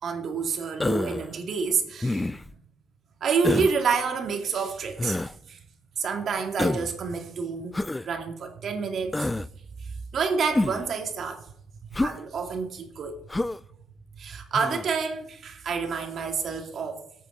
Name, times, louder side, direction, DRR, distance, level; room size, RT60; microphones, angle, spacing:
voice 1, 0.0-2.5 3.2-5.2 5.5-5.6 6.0-7.7 8.0-9.3 9.8-11.4 12.0-13.2 14.2-17.0, right 5 dB, 60° right, 2.2 m, -28 dB
Human voice, 0.8-1.3 2.0-2.5 3.4-3.8 5.0-5.3 6.6-6.9 7.7-8.1 9.1-9.5 10.5-10.9 11.9-12.2 13.3-13.6 14.5-14.9, left 2 dB, 15° left, 0.4 m, -27 dB
20.5 x 8.5 x 3.9 m
cardioid pair, 90°, 0 cm